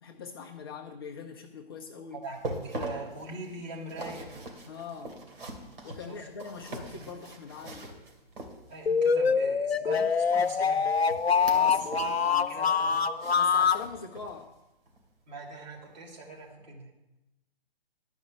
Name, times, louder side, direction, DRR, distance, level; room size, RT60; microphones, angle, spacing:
voice 1, 0.0-2.2 4.7-5.2 5.8-7.9 11.4-13.0 13.3-14.6, left 5 dB, 25° left, 0 dB, 0.6 m, -43 dB
voice 2, 2.1-4.5 6.1-6.2 8.7-10.9 11.7-11.9 12.5-13.2 15.3-16.9, right 2 dB, 45° right, -2 dB, 3.4 m, -42 dB
sound 1, 2.2-9.0 10.4-12.2 12.5-14.4 14.9-15.0 15.5-15.6, right 1 dB, 65° right, 2.8 m, -42 dB
sound 2, 8.9-13.8, left 6 dB, 80° left, 0.7 m, -25 dB
12.0 x 5.3 x 8.1 m, 0.98 s
figure-of-eight pair, 145°, 31 cm